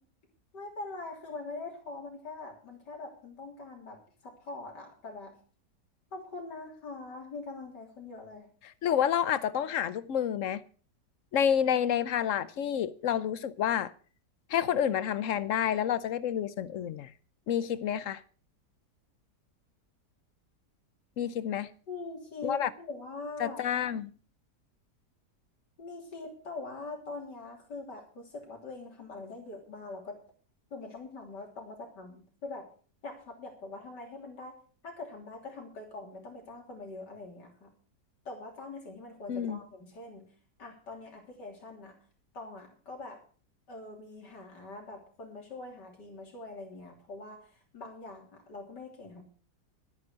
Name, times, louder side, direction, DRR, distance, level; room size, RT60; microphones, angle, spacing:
voice 1, 0.5-5.3 6.1-8.5 21.9-23.7 25.8-30.2 30.7-32.6 33.0-34.6 34.8-37.7 38.3-40.3 40.6-41.9 42.3-43.2 43.7-47.5 47.7-49.2, left 3 dB, 85° left, 3.8 m, -43 dB
voice 2, 8.6-10.6 11.3-13.9 14.5-17.1 17.5-18.2 21.2-21.7 22.4-22.7 23.4-24.1 39.3-39.6, left 9 dB, 60° left, 1.0 m, -29 dB
12.5 x 9.4 x 6.3 m
omnidirectional pair, 1.8 m